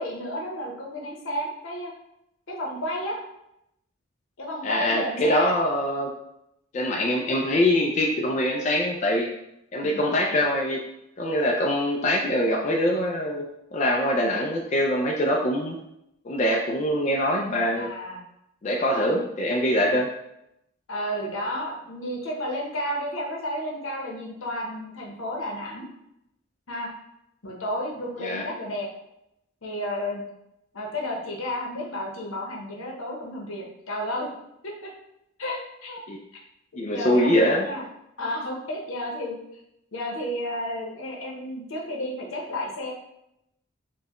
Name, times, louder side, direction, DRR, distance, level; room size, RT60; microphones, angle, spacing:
voice 1, 0.0-1.9 2.5-3.2 4.4-5.5 9.8-10.1 17.8-18.2 20.9-25.9 26.7-26.9 27.4-28.9 29.6-30.2 30.7-34.3 34.6-34.9 35.4-36.0 36.9-37.8 38.2-39.4 39.9-42.9, equal, 85° left, -2 dB, 0.9 m, -32 dB
voice 2, 4.6-6.1 6.7-9.3 9.7-10.8 11.2-15.8 16.2-17.9 18.6-20.1 28.2-28.4 36.1-36.2 36.8-37.7, left 1 dB, 35° left, 0 dB, 0.3 m, -23 dB
4.4 x 2.1 x 2.9 m, 0.82 s
head